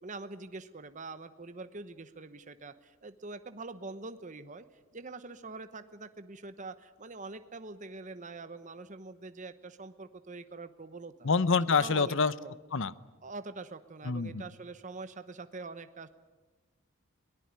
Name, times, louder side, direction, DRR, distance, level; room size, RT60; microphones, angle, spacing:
voice 1, 0.0-4.6 4.9-11.3 11.8-12.2 12.4-12.5 13.2-16.1, right 3 dB, 35° right, 11 dB, 1.0 m, -44 dB
voice 2, 11.2-12.3 12.7-12.9 14.0-14.4, left 4 dB, 60° left, 17 dB, 0.8 m, -26 dB
22.5 x 18.5 x 9.7 m, 1.2 s
head